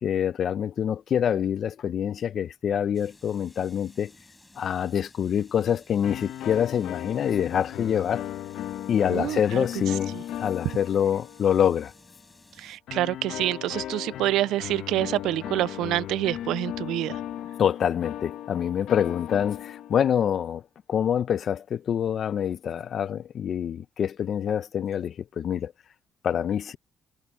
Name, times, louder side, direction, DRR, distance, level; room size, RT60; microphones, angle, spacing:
voice 1, 0.0-4.1 4.6-8.2 8.9-11.9 17.6-20.6 20.9-25.7 26.2-26.8, left 9 dB, 60° left, 0.7 m, -26 dB
sound 1, 2.9-12.8, left 2 dB, 15° left, 7.0 m, -55 dB
sound 2, 6.0-11.8 12.9-20.3, left 12 dB, 85° left, 1.0 m, -37 dB
voice 2, 9.1-9.7 10.1-10.2 12.6-17.2, right 15 dB, 90° right, 0.3 m, -27 dB
cardioid pair, 90°, 0 cm